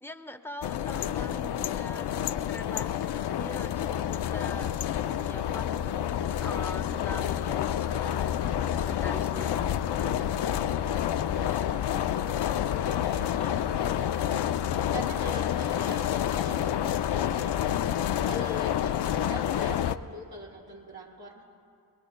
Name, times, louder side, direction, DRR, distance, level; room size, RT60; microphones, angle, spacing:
voice 1, 0.0-5.7 6.4-10.4, left 1 dB, 5° left, 7 dB, 0.9 m, -43 dB
sound 1, 0.6-20.0, left 10 dB, 70° left, 0.5 m, -29 dB
voice 2, 11.2-12.2 12.5-14.7 14.9-21.5, equal, 60° right, -5 dB, 4.7 m, -43 dB
24.5 x 21.5 x 2.2 m, 2.4 s
cardioid pair, 40°, 41 cm